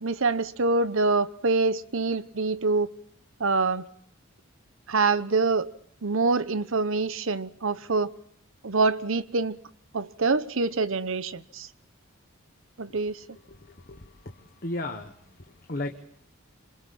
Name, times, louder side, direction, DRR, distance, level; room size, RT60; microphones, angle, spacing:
voice 1, 0.0-2.9 3.4-3.8 4.9-5.7 6.0-8.1 8.6-9.6 9.9-11.7 12.8-13.2, right 3 dB, 65° right, 0.9 m, -25 dB
voice 2, 13.7-14.3 14.6-15.1 15.7-16.0, left 2 dB, 40° left, 1.4 m, -34 dB
27.0 x 26.5 x 4.3 m
head